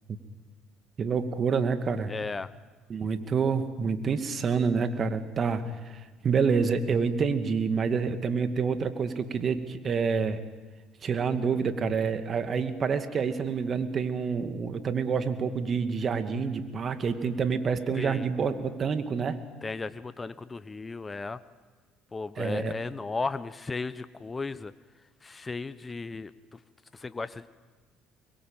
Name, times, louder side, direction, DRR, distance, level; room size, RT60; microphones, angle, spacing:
voice 1, 1.0-2.1 2.9-10.4 11.0-19.4 22.4-22.7, right 5 dB, 45° right, 8 dB, 2.3 m, -28 dB
voice 2, 2.1-2.5 17.9-18.3 19.6-21.4 22.1-24.7 25.2-26.6 26.9-27.5, left 3 dB, 25° left, 14 dB, 1.0 m, -35 dB
24.5 x 22.5 x 9.0 m, 1.3 s
hypercardioid pair, 70°, 0 cm